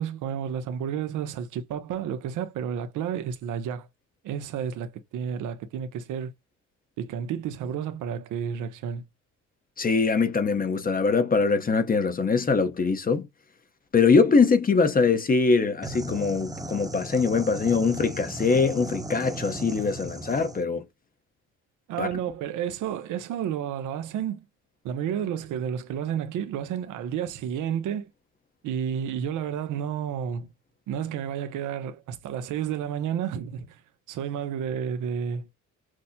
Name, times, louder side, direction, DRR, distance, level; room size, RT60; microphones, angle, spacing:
voice 1, 0.0-3.9 4.2-6.3 7.0-9.0 21.9-24.4 24.8-28.1 28.6-30.5 30.9-33.8 34.1-35.5, right 8 dB, 85° right, 0.8 m, -31 dB
voice 2, 9.8-13.3 13.9-20.8 22.0-22.1, left 4 dB, 30° left, 0.8 m, -22 dB
sound 1, 15.8-20.6, right 1 dB, 10° right, 0.9 m, -36 dB
6.0 x 2.1 x 2.7 m
cardioid pair, 90°, 30 cm